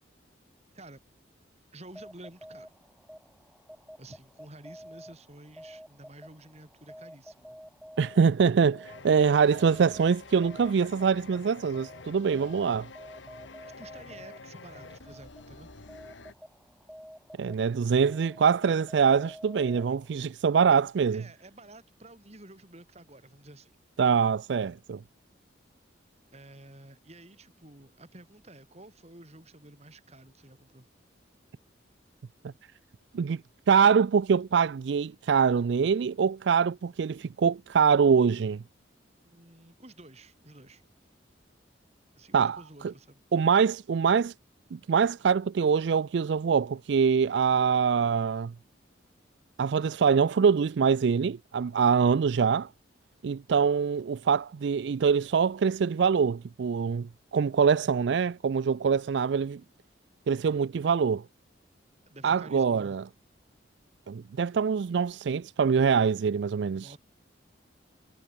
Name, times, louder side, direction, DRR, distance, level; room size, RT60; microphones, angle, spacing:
voice 1, 1.7-2.7 4.0-7.6 13.6-15.7 21.1-23.7 26.3-30.9 39.2-40.8 42.2-43.2 62.0-63.0 66.7-67.0, right 2 dB, 35° right, 2.6 m, -50 dB
sound 1, 1.8-20.3, equal, ahead, 5.5 m, -50 dB
voice 2, 8.0-12.9 17.4-21.2 24.0-25.0 33.1-33.4 33.7-38.6 42.3-42.6 43.3-44.3 44.7-48.5 49.6-52.7 53.2-59.6 60.3-61.2 62.2-63.0 64.1-66.9, right 6 dB, 65° right, 0.4 m, -24 dB
sound 2, 8.8-16.3, left 3 dB, 75° left, 1.6 m, -48 dB
head